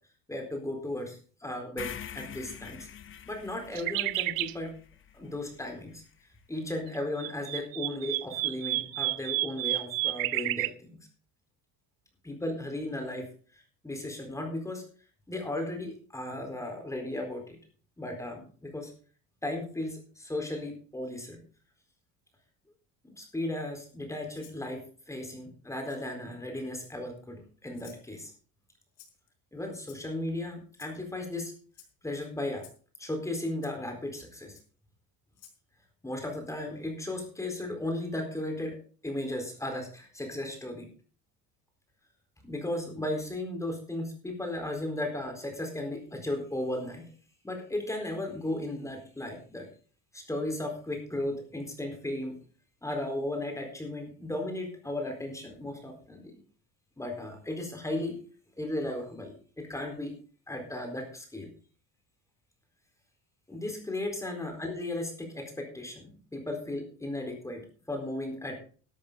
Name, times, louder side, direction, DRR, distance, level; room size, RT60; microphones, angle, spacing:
voice 1, 0.3-2.9 3.3-4.7 5.1-6.0 6.5-11.0 12.2-13.3 13.8-14.9 15.3-17.6 18.0-18.9 19.4-21.4 23.0-28.3 29.5-31.5 32.0-32.7 33.0-34.6 36.0-38.8 39.0-40.9 42.4-47.1 47.4-49.7 50.1-52.4 52.8-56.3 57.0-58.2 58.6-60.2 60.5-61.5 63.5-67.6 67.9-68.6, left 1 dB, 10° left, 3 dB, 4.2 m, -35 dB
sound 1, 1.8-5.9, left 9 dB, 30° left, 0.9 m, -45 dB
sound 2, 3.7-4.5 6.9-10.7, right 18 dB, 65° right, 0.7 m, -31 dB
Rattle (instrument), 24.3-24.6 25.9-26.0 26.7-27.2 27.7-28.0 28.9-29.3 29.8-30.3 30.7-31.0 31.7-31.9 32.6-32.8 33.6-33.7 34.5-34.6 35.3-35.6, left 10 dB, 90° left, 4.5 m, -54 dB
12.5 x 12.0 x 3.9 m, 0.40 s
cardioid pair, 145°, 38 cm